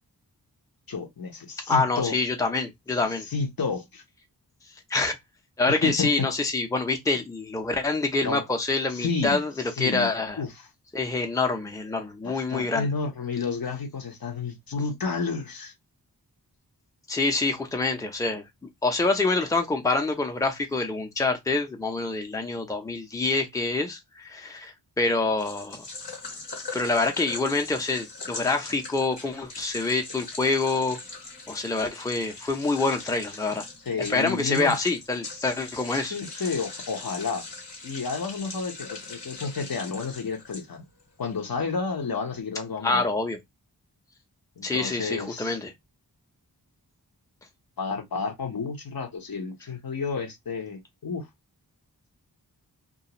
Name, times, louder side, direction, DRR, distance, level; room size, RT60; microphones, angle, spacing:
voice 1, 0.9-2.2 3.3-4.0 5.7-6.3 8.2-8.4 8.9-9.4 9.8-10.1 10.4-10.7 12.2-15.7 33.9-34.8 36.1-37.5 37.8-40.8 41.2-43.0 44.6-45.6 47.8-51.3, left 4 dB, 60° left, 0.8 m, -31 dB
voice 2, 1.7-3.3 4.9-5.2 5.6-10.4 10.9-12.9 17.1-18.4 18.8-25.9 26.7-31.0 31.5-33.6 34.1-36.2 42.8-43.4 44.6-45.7, left 3 dB, 10° left, 0.6 m, -26 dB
sound 1, 25.4-41.0, left 3 dB, 85° left, 1.3 m, -41 dB
2.4 x 2.3 x 2.9 m
wide cardioid pair, 55°, 40 cm